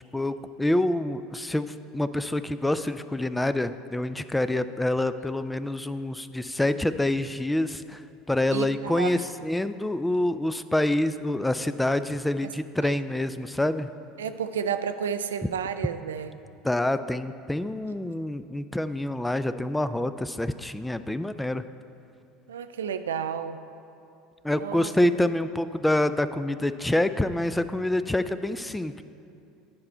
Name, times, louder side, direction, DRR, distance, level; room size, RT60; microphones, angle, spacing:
voice 1, 0.1-13.9 16.6-21.6 24.4-29.0, left 1 dB, 10° left, 12 dB, 0.3 m, -27 dB
voice 2, 8.5-9.2 12.8-13.0 14.2-16.3 22.5-23.6 24.6-24.9, right 7 dB, 85° right, 10 dB, 0.3 m, -31 dB
9.6 x 4.4 x 5.4 m, 2.7 s
hypercardioid pair, 75°, 0 cm